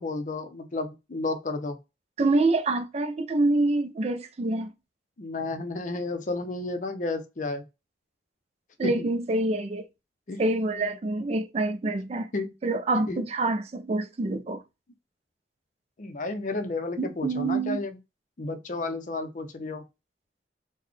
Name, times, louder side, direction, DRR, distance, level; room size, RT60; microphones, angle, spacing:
voice 1, 0.0-1.8 5.2-7.6 8.8-8.9 10.3-10.4 12.3-12.5 13.1-13.2 16.0-17.9 18.4-19.8, left 3 dB, 45° left, 0.5 m, -32 dB
voice 2, 2.2-4.7 8.8-9.9 10.4-12.3 12.6-14.6 17.0-17.8, right 2 dB, 35° right, 0.4 m, -26 dB
3.9 x 2.1 x 3.1 m
head